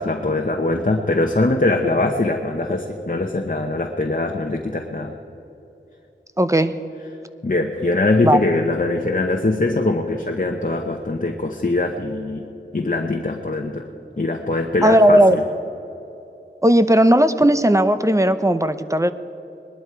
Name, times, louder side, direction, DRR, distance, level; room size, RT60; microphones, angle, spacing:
voice 1, 0.0-5.2 7.4-12.5 12.7-13.9 14.2-15.4, left 2 dB, 45° left, 3 dB, 1.0 m, -22 dB
voice 2, 6.4-6.7 8.2-8.4 14.8-15.4 16.6-19.1, right 1 dB, 15° right, 11 dB, 0.7 m, -15 dB
20.5 x 12.0 x 4.6 m, 2.9 s
wide cardioid pair, 45°, 20 cm